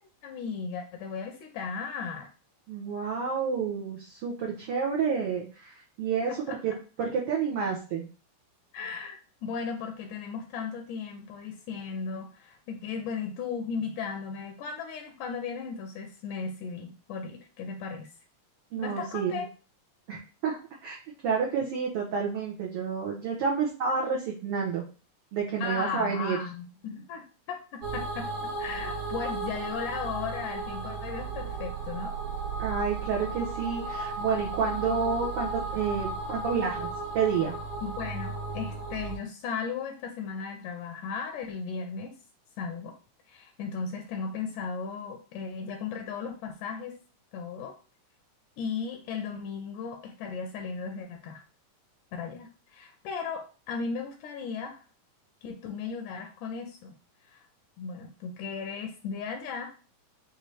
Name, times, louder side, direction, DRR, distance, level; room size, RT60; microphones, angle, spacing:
voice 1, 0.2-2.3 6.5-6.8 8.7-18.1 18.8-19.5 25.6-28.3 28.6-32.1 37.8-42.1 42.6-42.9 43.3-47.0 47.3-47.8 48.6-51.4 52.1-54.8 55.4-57.0 57.3-57.4 57.8-59.7, left 5 dB, 80° left, 3 dB, 2.1 m, -36 dB
voice 2, 2.7-6.7 7.0-8.1 18.7-19.4 20.1-21.0 21.2-24.8 25.3-26.4 32.6-36.9 37.1-37.5, right 6 dB, 85° right, -3 dB, 1.2 m, -29 dB
sound 1, 27.8-39.2, right 3 dB, 60° right, 2.4 m, -35 dB
6.0 x 2.6 x 3.2 m, 0.36 s
omnidirectional pair, 3.7 m